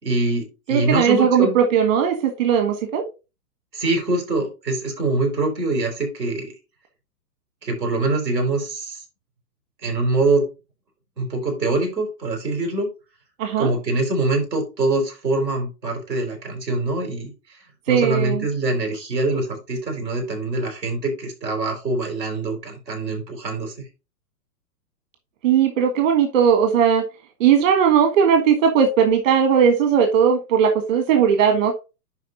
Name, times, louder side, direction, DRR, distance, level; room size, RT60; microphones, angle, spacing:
voice 1, 0.0-1.6 3.7-6.5 7.6-9.0 9.8-10.5 11.2-12.9 13.6-17.6 17.9-23.9, right 2 dB, 85° right, 4.7 m, -24 dB
voice 2, 0.7-3.0 13.4-13.7 17.9-18.4 25.4-27.0 27.4-31.8, right 7 dB, 50° right, 1.6 m, -18 dB
11.0 x 3.9 x 3.9 m
hypercardioid pair, 120°, 49 cm